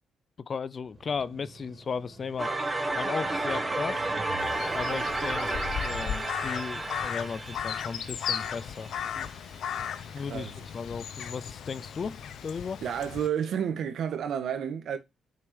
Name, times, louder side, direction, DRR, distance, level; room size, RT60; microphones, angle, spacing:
voice 1, 0.4-2.5 2.9-4.1 4.7-5.5 5.8-9.3 10.1-12.8, left 5 dB, 40° left, 0.5 m, -36 dB
Motorcycle, 0.8-7.6, right 3 dB, 35° right, 3.3 m, -47 dB
sound 1, 2.4-9.3, right 2 dB, 15° right, 1.6 m, -32 dB
Crow, 4.4-13.3, left 8 dB, 70° left, 0.8 m, -36 dB
voice 2, 10.2-10.5 12.8-15.0, right 8 dB, 65° right, 1.6 m, -31 dB
6.6 x 4.6 x 5.2 m
cardioid pair, 90°, 0 cm